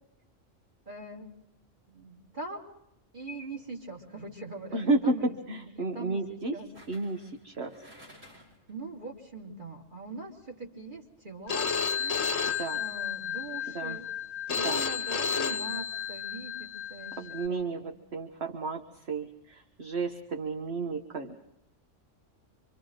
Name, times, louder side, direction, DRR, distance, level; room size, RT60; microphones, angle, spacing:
voice 1, 0.9-1.3 1.9-2.6 3.1-5.3 5.7-6.7 8.7-14.1 14.5-17.2 17.5-17.9, right 2 dB, 40° right, 0 dB, 2.9 m, -42 dB
sound 1, 4.1-4.4 6.7-8.7 9.1-9.2, equal, 80° right, 5.7 m, -54 dB
voice 2, 4.7-6.5 6.9-7.7 12.6-12.8 13.7-14.0 14.5-14.8 17.2-18.8 19.1-21.4, right 3 dB, 60° right, 2 dB, 1.6 m, -32 dB
Telephone, 11.5-17.5, left 6 dB, 65° left, 1.4 m, -32 dB
27.0 x 25.0 x 3.9 m, 0.81 s
omnidirectional pair, 1.3 m